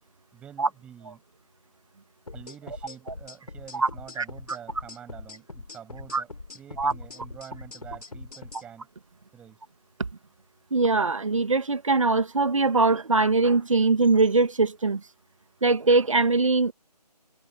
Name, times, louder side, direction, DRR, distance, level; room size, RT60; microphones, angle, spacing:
voice 1, 0.3-1.2 2.3-8.9 9.3-9.6, right 9 dB, 5° right, 7.0 m, -47 dB
sound 1, 2.3-8.6, left 3 dB, 65° left, 4.3 m, -42 dB
voice 2, 10.7-15.0 15.6-16.7, right 3 dB, 50° right, 2.2 m, -22 dB
figure-of-eight pair, 160°, 21 cm